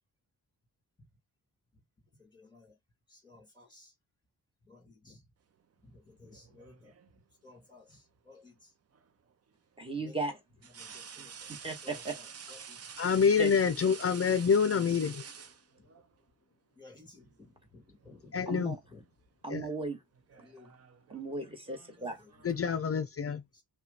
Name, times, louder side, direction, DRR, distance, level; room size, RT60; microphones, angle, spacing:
voice 1, 2.2-2.8 3.1-3.9 4.6-5.3 5.8-8.7 9.9-11.5 11.8-12.9 15.8-15.9 16.8-19.0 19.5-19.7 20.3-20.8 22.0-22.6 23.5-23.6, left 3 dB, 10° left, 2.8 m, -57 dB
sound 1, 6.3-7.2 8.9-9.1 10.6-16.1 17.3-17.5 17.9-18.6 18.9-19.3 20.1-22.7, right 7 dB, 40° right, 0.6 m, -49 dB
voice 2, 9.8-10.3 11.2-12.1 13.4-13.5 18.5-18.8 19.4-20.0 21.1-22.2, right 3 dB, 15° right, 1.5 m, -36 dB
voice 3, 13.0-15.2 18.3-18.7 19.5-19.7 22.4-23.4, left 6 dB, 40° left, 0.5 m, -27 dB
5.4 x 2.3 x 4.2 m
wide cardioid pair, 160°, 38 cm